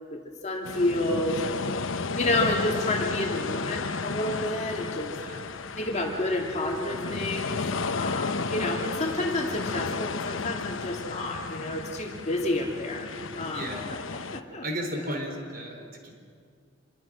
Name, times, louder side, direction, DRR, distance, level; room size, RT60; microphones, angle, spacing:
voice 1, 0.1-1.5 2.1-5.2 5.8-7.6 7.9-13.1 13.4-13.7 14.1-14.6, left 1 dB, 35° left, 1 dB, 2.5 m, -29 dB
sound 1, 0.6-14.4, left 4 dB, 90° left, 0.9 m, -33 dB
voice 2, 13.4-13.9 14.6-16.1, equal, 50° right, 2 dB, 4.2 m, -35 dB
27.0 x 23.0 x 6.4 m, 2.2 s
head